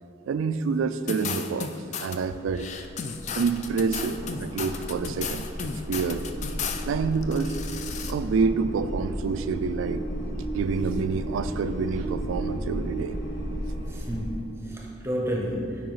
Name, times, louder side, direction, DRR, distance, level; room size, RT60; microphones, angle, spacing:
voice 1, 0.3-1.7 2.0-2.7 3.3-5.5 5.9-6.3 6.9-7.6 8.1-10.0 10.5-13.2, right 5 dB, 90° right, 11 dB, 0.3 m, -27 dB
sound 1, 1.1-2.2 2.6-6.9 7.2-8.1, left 6 dB, 35° left, 0.3 m, -34 dB
sound 2, 2.7-14.3, equal, 80° left, 1.2 m, -34 dB
voice 2, 13.9-15.9, equal, 15° right, 0 dB, 0.6 m, -31 dB
9.1 x 4.7 x 4.0 m, 2.5 s
head